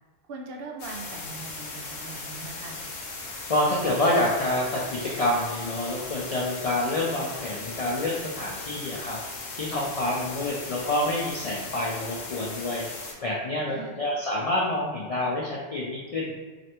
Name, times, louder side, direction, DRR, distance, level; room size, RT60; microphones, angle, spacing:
voice 1, 0.3-2.8 13.7-14.0, right 3 dB, 65° right, 0 dB, 0.7 m, -41 dB
sound 1, 0.8-13.1, left 3 dB, 85° left, 1.0 m, -38 dB
voice 2, 3.5-9.2 9.6-12.8 13.2-16.3, left 1 dB, 65° left, -3 dB, 0.3 m, -27 dB
3.2 x 2.5 x 2.8 m, 1.4 s
omnidirectional pair, 1.1 m